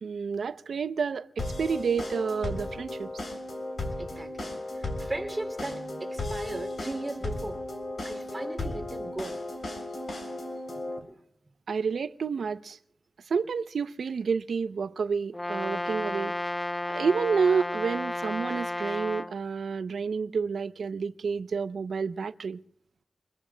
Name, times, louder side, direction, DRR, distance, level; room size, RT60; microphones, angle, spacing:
voice 1, 0.0-3.1 11.7-12.8 13.3-16.5 16.9-22.6, right 5 dB, 80° right, 0.6 m, -29 dB
sound 1, 1.4-11.0, left 2 dB, 60° left, 3.5 m, -35 dB
voice 2, 4.0-7.6 8.0-9.4 11.1-11.2, right 2 dB, 20° right, 2.8 m, -37 dB
Brass instrument, 15.3-19.3, left 1 dB, 20° left, 0.6 m, -32 dB
27.5 x 22.0 x 2.2 m
wide cardioid pair, 75°, 0 cm